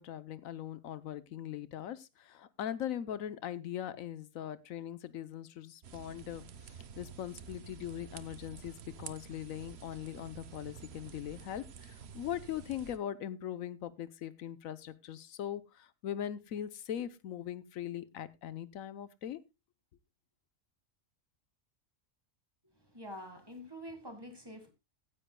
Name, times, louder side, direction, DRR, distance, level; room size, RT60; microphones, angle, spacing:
voice 1, 0.0-19.4, left 10 dB, 85° left, 1.2 m, -41 dB
sound 1, 5.8-13.0, right 7 dB, 55° right, 1.0 m, -50 dB
voice 2, 22.6-24.7, equal, 20° right, 1.9 m, -47 dB
15.5 x 10.0 x 2.2 m
omnidirectional pair, 1.4 m